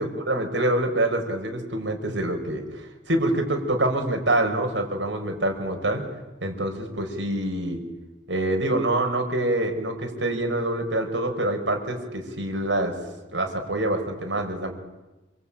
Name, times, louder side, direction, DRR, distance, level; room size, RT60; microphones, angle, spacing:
voice 1, 0.0-6.0 6.4-7.8 8.3-12.9 13.3-14.7, right 1 dB, 80° right, 3 dB, 5.5 m, -26 dB
27.0 x 24.5 x 8.9 m, 1.1 s
head